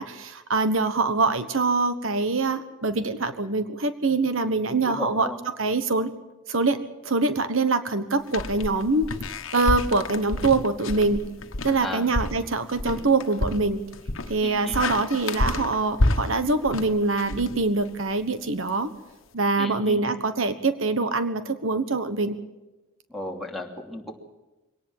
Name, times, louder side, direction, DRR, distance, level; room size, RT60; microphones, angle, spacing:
voice 1, 0.0-5.3 5.6-6.1 6.5-9.2 9.5-11.3 11.6-13.8 14.3-18.9 19.3-22.4, right 3 dB, 80° right, 10 dB, 1.3 m, -24 dB
voice 2, 4.8-5.4 11.8-12.1 14.4-14.8 19.6-20.0 23.1-24.2, left 1 dB, ahead, -1 dB, 2.9 m, -34 dB
sound 1, 8.3-18.1, left 2 dB, 80° left, 1.3 m, -29 dB
24.0 x 18.5 x 7.4 m, 1.1 s
head